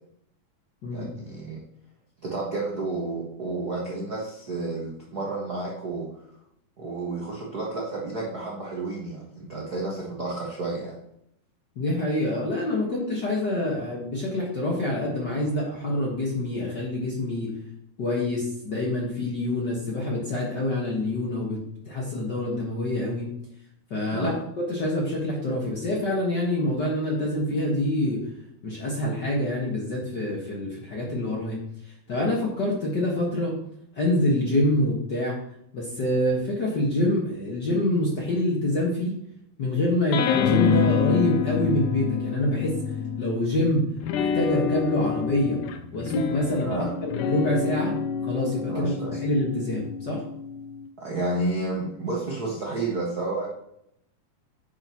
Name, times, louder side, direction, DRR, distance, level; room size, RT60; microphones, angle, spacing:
voice 1, 0.9-1.6 2.2-6.1 6.8-10.9 24.1-24.4 46.6-46.9 48.7-49.2 51.0-53.5, right 2 dB, 75° right, -4 dB, 0.8 m, -31 dB
voice 2, 11.7-17.5 18.0-21.6 21.8-23.3 23.9-24.3 24.7-28.2 28.6-31.6 32.1-33.6 34.0-35.4 35.7-39.1 39.6-42.8 43.2-43.9 44.1-45.6 45.9-46.7 47.0-47.9 48.2-48.9 49.2-50.2, left 1 dB, 55° left, -3 dB, 1.1 m, -26 dB
sound 1, 40.1-43.5 44.0-50.8, left 7 dB, 80° left, 2.0 m, -27 dB
9.6 x 6.8 x 3.0 m, 0.76 s
omnidirectional pair, 4.2 m